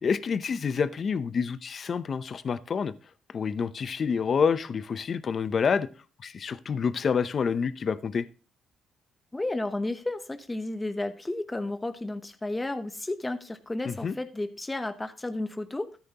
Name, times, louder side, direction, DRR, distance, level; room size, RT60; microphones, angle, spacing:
voice 1, 0.0-2.9 3.3-5.9 6.2-8.3 13.8-14.2, left 6 dB, 45° left, 0.7 m, -28 dB
voice 2, 9.3-16.0, left 2 dB, 15° left, 0.9 m, -32 dB
13.5 x 9.3 x 2.9 m
cardioid pair, 90°, 0 cm